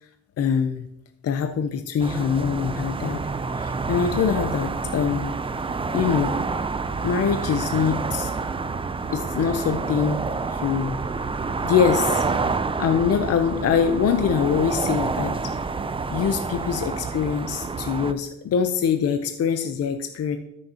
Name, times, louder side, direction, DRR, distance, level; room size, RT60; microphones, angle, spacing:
voice 1, 0.4-0.9 1.2-3.2 3.6-5.3 5.9-6.4 7.0-8.3 9.1-11.0 11.6-12.3 12.8-15.5 16.1-20.4, left 7 dB, 55° left, 7 dB, 0.7 m, -24 dB
sound 1, 2.0-18.1, right 4 dB, 20° right, 0.5 m, -28 dB
13.0 x 6.5 x 2.9 m, 0.83 s
cardioid pair, 90°, 30 cm